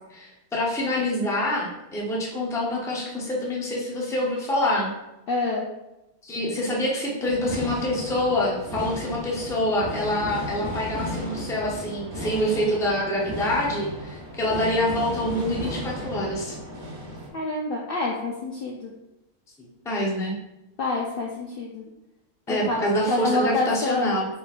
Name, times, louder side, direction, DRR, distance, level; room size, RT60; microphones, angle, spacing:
voice 1, 0.0-4.9 6.2-16.6 19.6-20.4 22.5-24.3, left 1 dB, 5° left, -4 dB, 0.4 m, -26 dB
voice 2, 5.3-5.7 17.3-18.9 20.8-21.8 22.5-24.1, left 2 dB, 85° left, -2 dB, 0.5 m, -27 dB
sound 1, 7.2-17.3, equal, 45° right, 1.0 m, -34 dB
4.1 x 3.7 x 2.4 m, 0.95 s
omnidirectional pair, 1.5 m